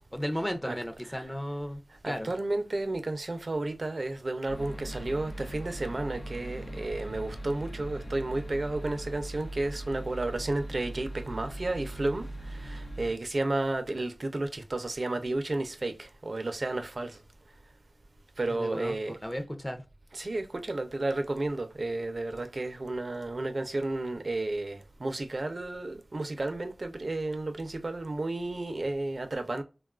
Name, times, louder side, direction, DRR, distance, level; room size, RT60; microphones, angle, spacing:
voice 1, 0.1-2.3 18.5-19.0 19.2-19.8, equal, 10° left, 0.5 m, -34 dB
voice 2, 1.9-17.2 18.4-19.2 20.1-29.6, right 2 dB, 55° right, 0.5 m, -32 dB
sound 1, 4.5-13.1, right 1 dB, 70° left, 0.5 m, -40 dB
3.4 x 2.3 x 2.3 m
wide cardioid pair, 55°, 0 cm